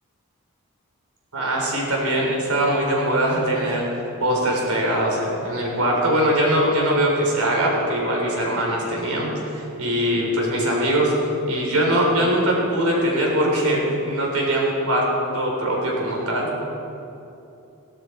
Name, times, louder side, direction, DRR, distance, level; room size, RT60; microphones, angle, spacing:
voice 1, 1.3-3.9 4.2-11.1 11.5-15.1 15.3-16.7, right 1 dB, 80° right, -2 dB, 3.8 m, -22 dB
16.5 x 12.0 x 4.5 m, 2.8 s
head